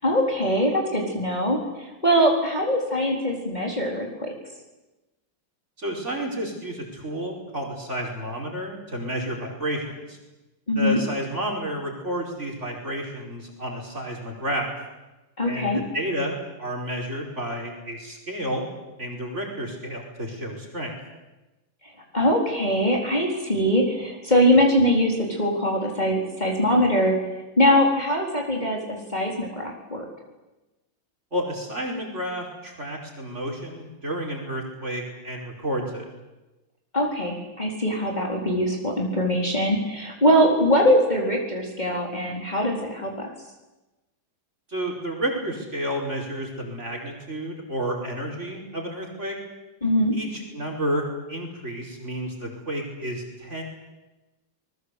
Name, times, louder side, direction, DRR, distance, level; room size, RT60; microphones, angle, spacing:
voice 1, 0.0-4.3 10.7-11.0 15.4-15.8 22.1-27.2 27.6-30.0 36.9-43.3 49.8-50.2, equal, 20° left, -1 dB, 4.3 m, -22 dB
voice 2, 5.8-10.2 10.8-14.7 15.4-18.7 19.0-20.9 31.3-36.1 44.7-49.4 50.1-53.6, equal, 35° right, 0 dB, 5.3 m, -31 dB
28.0 x 21.0 x 8.3 m, 1.1 s
omnidirectional pair, 2.2 m